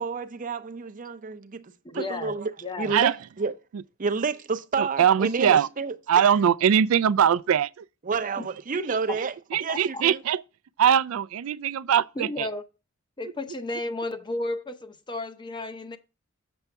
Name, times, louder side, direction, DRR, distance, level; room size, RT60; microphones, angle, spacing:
voice 1, 0.0-2.5 2.8-3.5 4.0-6.0 8.0-9.3 9.6-10.2, right 4 dB, 40° right, 0.6 m, -30 dB
voice 2, 1.8-3.0 8.4-8.5 9.7-10.0 12.2-12.6 13.2-16.0, left 2 dB, 20° left, 0.7 m, -33 dB
voice 3, 4.8-5.7 6.1-7.7 9.2-9.3 9.5-10.4 10.8-12.5, right 8 dB, 85° right, 0.4 m, -21 dB
7.1 x 6.7 x 3.5 m
head